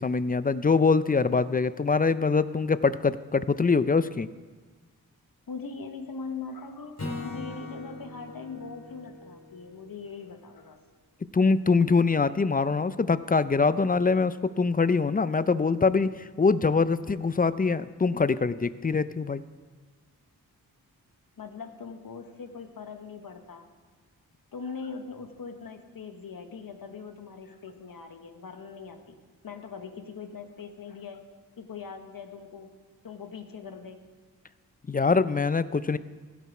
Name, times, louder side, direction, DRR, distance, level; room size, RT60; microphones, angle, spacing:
voice 1, 0.0-4.3 11.3-16.1 16.4-19.4 34.9-36.0, left 4 dB, 25° left, 15 dB, 0.4 m, -24 dB
voice 2, 5.5-6.9 7.2-10.8 21.4-23.7 24.5-31.2 31.6-32.7 33.0-34.0, left 5 dB, 65° left, 7 dB, 1.2 m, -41 dB
Acoustic guitar / Strum, 7.0-10.3, left 2 dB, 45° left, 3.0 m, -40 dB
16.0 x 7.0 x 4.9 m, 1.4 s
cardioid pair, 60°, 38 cm